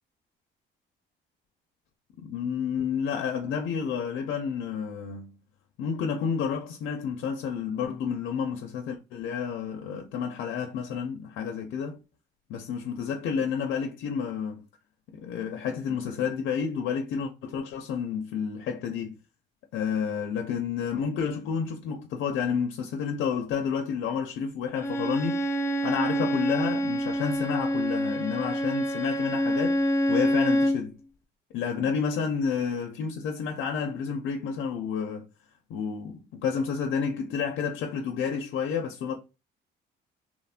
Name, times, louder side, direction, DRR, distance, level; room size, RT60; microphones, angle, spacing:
voice 1, 2.2-5.4 5.8-12.0 12.5-14.7 15.1-19.2 19.7-25.4 25.8-29.8 30.1-31.0 31.5-35.3 35.7-39.2, left 6 dB, 80° left, 0.4 m, -30 dB
Bowed string instrument, 24.8-30.8, equal, 15° left, 0.4 m, -26 dB
2.9 x 2.1 x 2.3 m
cardioid pair, 90°, 20 cm